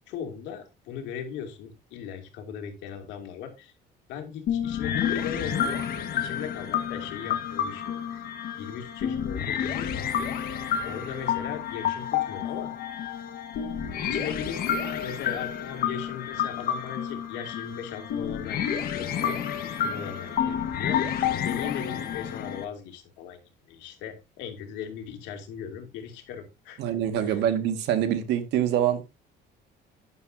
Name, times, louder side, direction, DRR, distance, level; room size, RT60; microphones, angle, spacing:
voice 1, 0.1-3.7 4.1-5.9 6.1-8.2 8.6-10.2 10.8-12.7 14.0-21.0 21.3-23.4 23.7-26.8 27.2-27.4, left 8 dB, 85° left, 2.7 m, -38 dB
sound 1, 4.5-22.6, left 8 dB, 55° left, 1.5 m, -30 dB
voice 2, 26.8-29.1, right 10 dB, 75° right, 1.9 m, -25 dB
11.5 x 9.6 x 2.7 m
cardioid pair, 165°, 18 cm